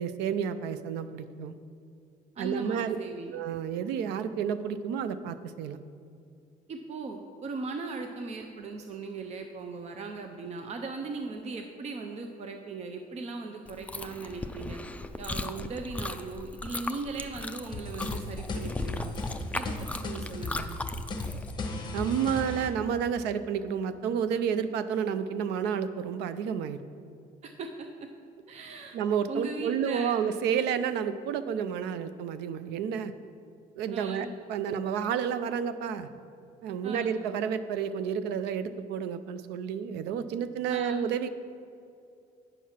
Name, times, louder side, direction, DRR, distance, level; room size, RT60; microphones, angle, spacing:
voice 1, 0.0-1.5 2.4-3.0 3.3-5.8 21.9-26.8 28.9-33.1 33.8-36.1 36.6-41.3, right 7 dB, 90° right, 12 dB, 0.5 m, -30 dB
voice 2, 2.4-3.3 6.7-14.8 15.2-19.2 19.5-20.8 27.4-28.1 28.5-29.0 29.3-30.2 33.9-34.3 36.8-37.1 40.7-41.1, right 3 dB, 40° right, 5 dB, 0.6 m, -38 dB
Chewing mastication, 13.7-21.5, left 2 dB, 10° left, 0.3 m, -37 dB
sound 1, 17.7-22.7, left 2 dB, 25° left, 1.0 m, -36 dB
9.1 x 4.7 x 5.7 m, 2.5 s
cardioid pair, 110°, 17 cm